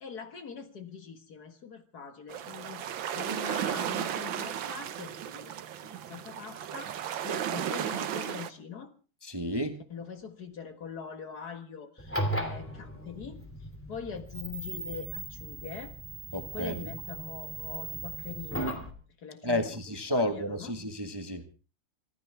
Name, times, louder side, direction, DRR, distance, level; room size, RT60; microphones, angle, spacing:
voice 1, 0.0-5.6 5.8-8.9 9.9-15.9 16.5-18.8 19.2-19.8 20.1-20.7, left 6 dB, 55° left, 8 dB, 2.0 m, -43 dB
sound 1, 2.3-8.5, right 9 dB, 75° right, 1.7 m, -34 dB
voice 2, 9.2-9.8 16.3-16.9 19.4-21.4, left 1 dB, 15° right, 7 dB, 1.2 m, -31 dB
sound 2, 12.0-18.9, right 1 dB, 5° left, 2.6 m, -37 dB
26.5 x 13.5 x 3.5 m, 0.34 s
omnidirectional pair, 2.1 m